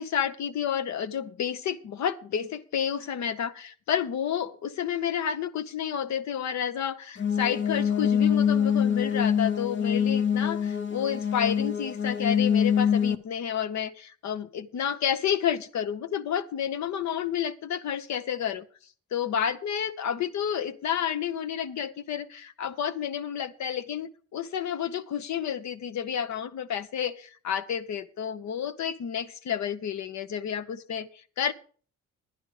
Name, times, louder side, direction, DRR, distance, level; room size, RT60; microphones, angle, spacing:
voice 1, 0.0-18.7 19.1-31.5, left 8 dB, 65° left, 12 dB, 0.9 m, -30 dB
sound 1, 7.2-13.2, left 8 dB, 40° left, 0.8 m, -25 dB
11.0 x 10.5 x 4.8 m, 0.42 s
cardioid pair, 90°, 30 cm